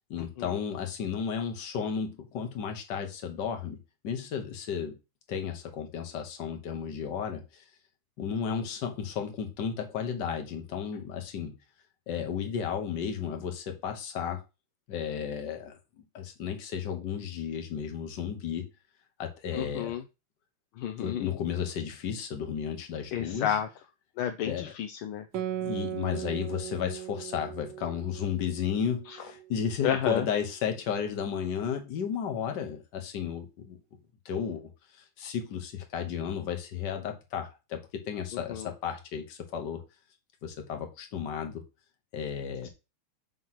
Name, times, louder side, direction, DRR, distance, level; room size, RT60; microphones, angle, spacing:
voice 1, 0.1-3.8 4.0-4.9 5.3-7.6 8.2-11.6 12.1-14.4 14.9-18.7 19.2-20.0 21.0-23.6 24.4-24.7 25.6-33.8 34.2-34.7 35.0-39.8 40.4-41.6 42.1-42.7, left 7 dB, 55° left, 1.7 m, -33 dB
voice 2, 19.5-20.0 20.8-21.3 23.1-23.7 24.2-25.2 29.1-29.2 29.8-30.2 38.5-38.7, left 9 dB, 80° left, 1.4 m, -30 dB
Guitar, 25.3-30.3, right 11 dB, 80° right, 1.7 m, -38 dB
7.6 x 3.1 x 5.8 m
omnidirectional pair, 2.4 m